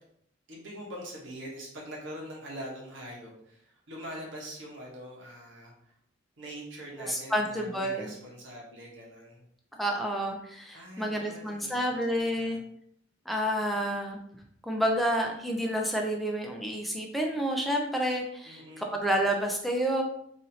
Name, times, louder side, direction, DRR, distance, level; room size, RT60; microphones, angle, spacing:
voice 1, 0.5-5.9 6.4-9.4 10.7-12.6 18.4-19.1, equal, 75° right, -2 dB, 1.1 m, -43 dB
voice 2, 7.1-8.1 9.7-12.6 13.3-14.2 14.6-20.0, equal, ahead, 1 dB, 0.4 m, -29 dB
4.2 x 2.7 x 2.7 m, 0.69 s
head